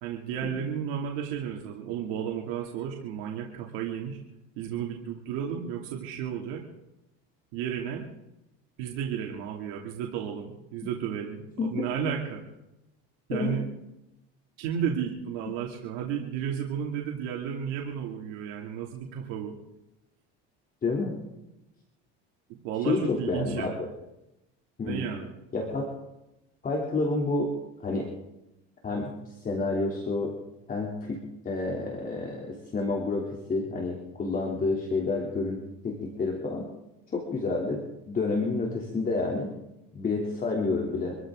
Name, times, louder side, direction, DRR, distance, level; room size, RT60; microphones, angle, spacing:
voice 1, 0.0-4.2 4.6-6.6 7.5-8.0 8.8-12.4 13.3-13.6 14.6-19.5 22.6-23.8 24.9-25.3, right 8 dB, 85° right, 0 dB, 2.6 m, -33 dB
voice 2, 20.8-21.2 22.9-23.9 24.8-25.1 25.5-25.9 26.6-27.5 27.8-28.1 28.8-29.1 29.4-30.4 30.7-36.7 37.1-39.5 39.9-41.1, left 3 dB, 30° left, 0 dB, 3.0 m, -29 dB
26.0 x 14.0 x 3.8 m, 0.92 s
cardioid pair, 120°, 30 cm